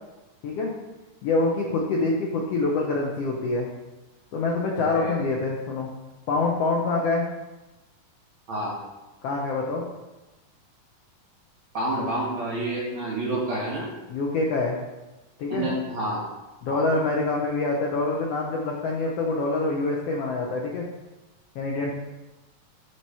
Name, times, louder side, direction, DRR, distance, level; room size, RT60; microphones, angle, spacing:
voice 1, 1.2-3.7 4.3-5.9 6.3-7.3 9.2-9.8 14.1-14.8 15.4-15.7 16.6-20.9 21.5-21.9, left 3 dB, 80° left, -1 dB, 1.4 m, -25 dB
voice 2, 4.8-5.2 8.5-8.8 11.7-13.9 15.5-16.3 16.7-16.9, right 1 dB, 60° right, -4 dB, 2.8 m, -29 dB
7.7 x 3.0 x 5.5 m, 1.1 s
omnidirectional pair, 3.8 m